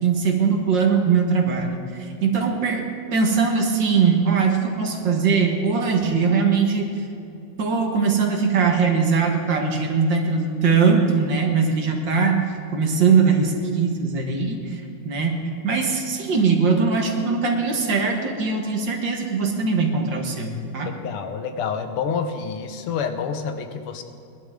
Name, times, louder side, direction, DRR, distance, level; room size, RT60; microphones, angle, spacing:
voice 1, 0.0-6.9 7.6-12.5 12.7-20.9, right 5 dB, 60° right, 2 dB, 2.0 m, -21 dB
voice 2, 20.8-24.0, left 6 dB, 85° left, 7 dB, 1.9 m, -28 dB
20.5 x 11.5 x 3.6 m, 2.5 s
omnidirectional pair, 2.4 m